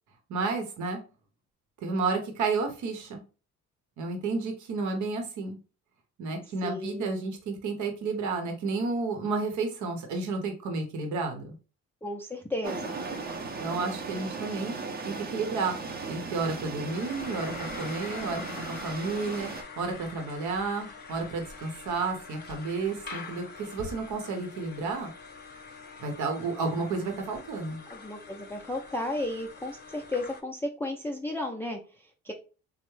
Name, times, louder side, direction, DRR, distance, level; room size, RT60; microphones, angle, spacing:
voice 1, 0.3-1.0 1.8-3.2 4.0-5.6 6.2-11.5 13.6-14.7 15.0-15.7 16.1-19.5 19.8-25.1 26.0-27.8, right 4 dB, 75° right, 4 dB, 0.8 m, -31 dB
voice 2, 6.6-7.1 12.0-13.0 27.9-32.3, left 1 dB, 10° left, 2 dB, 0.4 m, -34 dB
sound 1, 12.6-19.6, right 4 dB, 30° right, 0.6 m, -37 dB
sound 2, 16.9-30.4, left 4 dB, 35° left, 0.7 m, -45 dB
3.4 x 2.0 x 3.1 m, 0.34 s
cardioid pair, 90°, 30 cm